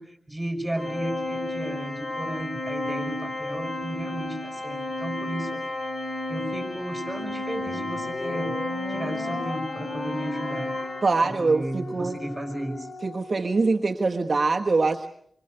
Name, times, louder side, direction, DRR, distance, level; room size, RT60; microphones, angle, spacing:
voice 1, 0.0-5.8 6.3-8.5 8.9-10.7 11.2-12.9, right 1 dB, 10° right, 5 dB, 5.5 m, -34 dB
Organ, 0.8-11.5, left 2 dB, 55° left, 4.7 m, -32 dB
sound 1, 7.7-14.2, left 4 dB, 75° left, 1.6 m, -39 dB
voice 2, 11.0-12.2 13.0-15.1, right 3 dB, 45° right, 3 dB, 1.4 m, -23 dB
27.0 x 24.5 x 8.0 m, 0.68 s
wide cardioid pair, 140°, 0 cm